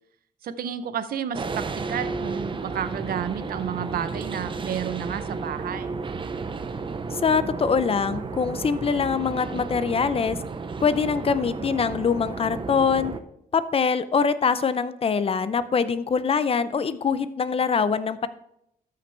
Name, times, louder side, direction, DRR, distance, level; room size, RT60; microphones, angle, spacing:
voice 1, 0.4-6.0, right 8 dB, 80° right, 12 dB, 0.6 m, -31 dB
sound 1, 1.3-13.2, right 4 dB, 35° right, 0.7 m, -33 dB
voice 2, 7.1-10.4 10.8-13.1 13.5-18.3, left 6 dB, 40° left, 14 dB, 0.6 m, -23 dB
13.0 x 5.9 x 3.3 m, 0.75 s
cardioid pair, 105°, 15 cm